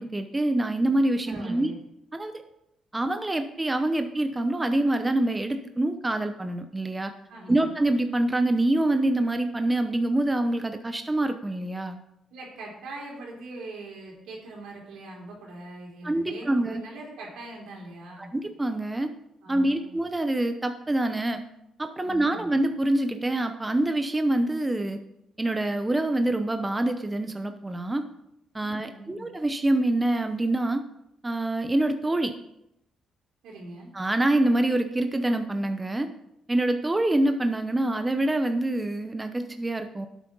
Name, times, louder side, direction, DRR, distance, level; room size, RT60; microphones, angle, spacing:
voice 1, 0.0-1.7 2.1-2.4 2.9-7.1 7.5-12.0 16.0-16.8 18.2-19.1 19.5-21.4 21.8-25.0 25.4-28.0 28.5-30.8 31.2-32.3 33.9-36.1 36.5-40.1, right 1 dB, 15° right, 7 dB, 0.8 m, -25 dB
voice 2, 1.3-1.8 7.3-7.7 12.3-18.3 19.4-20.0 22.0-22.5 28.6-29.3 33.4-33.9, right 2 dB, 85° right, -2 dB, 3.7 m, -42 dB
11.5 x 8.4 x 3.9 m, 0.81 s
cardioid pair, 90°, 0 cm